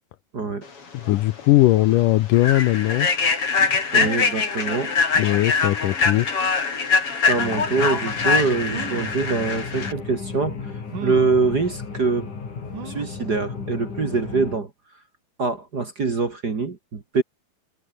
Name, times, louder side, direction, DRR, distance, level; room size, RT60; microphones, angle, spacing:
voice 1, 0.3-0.7 3.9-4.9 7.3-10.7 11.0-12.3 12.8-14.7 15.4-17.2, right 4 dB, 35° right, 2.0 m, -24 dB
voice 2, 0.9-3.1 5.2-6.3, left 16 dB, 75° left, 2.2 m, -19 dB
Human voice / Train, 1.1-1.2 1.6-1.8 2.3-9.9, left 5 dB, 40° left, 4.5 m, -23 dB
sound 1, 7.3-14.6, left 5 dB, 60° left, 6.2 m, -34 dB
sound 2, 8.6-9.2 10.0-10.1 10.9-11.4 12.7-13.2 13.7-13.8 14.1-14.2, right 8 dB, 60° right, 3.8 m, -35 dB
omnidirectional pair, 4.1 m